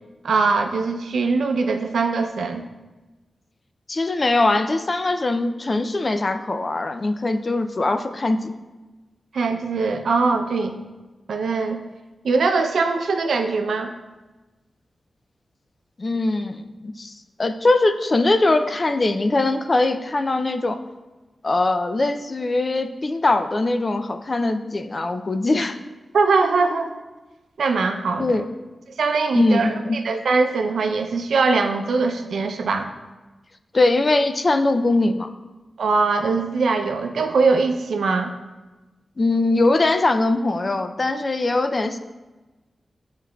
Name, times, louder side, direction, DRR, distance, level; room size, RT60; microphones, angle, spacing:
voice 1, 0.2-2.6 9.3-10.8 11.3-11.8 12.2-13.9 26.1-27.0 27.6-28.4 29.0-29.8 30.0-32.9 35.8-38.3, right 4 dB, 90° right, 6 dB, 0.5 m, -21 dB
voice 2, 3.9-8.5 16.0-20.8 21.4-25.8 28.2-28.5 29.3-30.0 33.7-35.3 39.2-42.0, left 2 dB, 35° left, 8 dB, 0.4 m, -21 dB
9.6 x 4.7 x 2.3 m, 1.2 s
wide cardioid pair, 105°, 0 cm